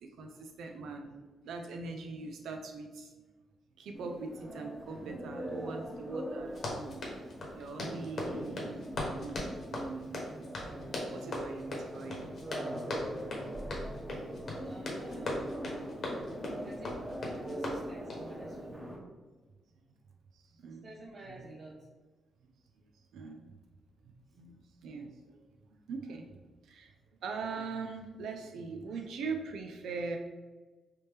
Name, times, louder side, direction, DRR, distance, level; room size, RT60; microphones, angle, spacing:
voice 1, 0.0-3.3 3.8-7.0 7.5-10.5 10.7-12.3 20.3-20.9 21.3-21.5 23.1-23.5 24.0-25.4 25.7-26.9 27.2-30.2, right 4 dB, 85° right, 4 dB, 0.3 m, -42 dB
sound 1, 3.9-19.0, right 1 dB, 5° left, 0.9 m, -42 dB
Run, 6.5-18.3, left 1 dB, 50° left, 0.9 m, -39 dB
voice 2, 14.6-15.9 16.6-17.1 17.5-18.9 20.6-21.8 28.9-29.0, right 1 dB, 55° right, -6 dB, 0.7 m, -51 dB
3.3 x 2.8 x 3.2 m, 1.3 s
cardioid pair, 105°, 0 cm